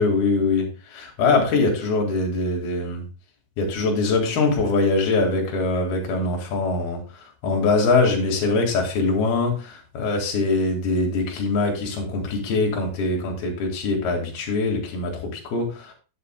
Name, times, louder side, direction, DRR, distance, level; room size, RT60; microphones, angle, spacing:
voice 1, 0.0-3.0 3.6-15.9, left 3 dB, 60° left, 1 dB, 3.8 m, -23 dB
11.0 x 8.6 x 2.3 m, 0.34 s
omnidirectional pair, 5.3 m